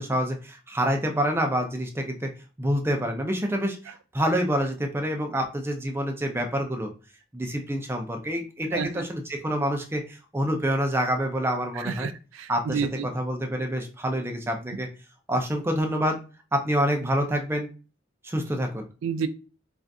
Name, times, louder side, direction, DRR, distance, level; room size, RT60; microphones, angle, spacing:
voice 1, 0.0-2.3 2.6-6.9 7.3-12.1 12.5-14.9 15.3-16.2 16.5-17.7 18.2-18.9, equal, 10° right, 3 dB, 0.5 m, -27 dB
voice 2, 8.7-9.0 11.8-13.1 19.0-19.3, right 6 dB, 85° right, 13 dB, 0.3 m, -30 dB
2.5 x 2.5 x 3.4 m, 0.34 s
head